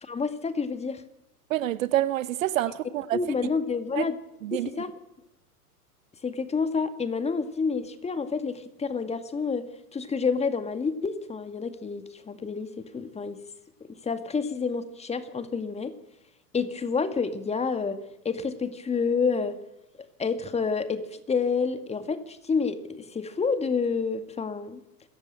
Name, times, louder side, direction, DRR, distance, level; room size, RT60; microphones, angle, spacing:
voice 1, 0.0-1.0 3.1-4.2 4.5-4.9 6.2-13.4 14.0-15.9 16.5-18.0 18.2-19.6 20.2-24.8, left 5 dB, 15° left, 2.0 m, -29 dB
voice 2, 1.5-3.2 3.9-4.1 4.4-4.7, right 14 dB, 55° right, 1.1 m, -27 dB
27.0 x 14.5 x 8.9 m
figure-of-eight pair, 105°, 47 cm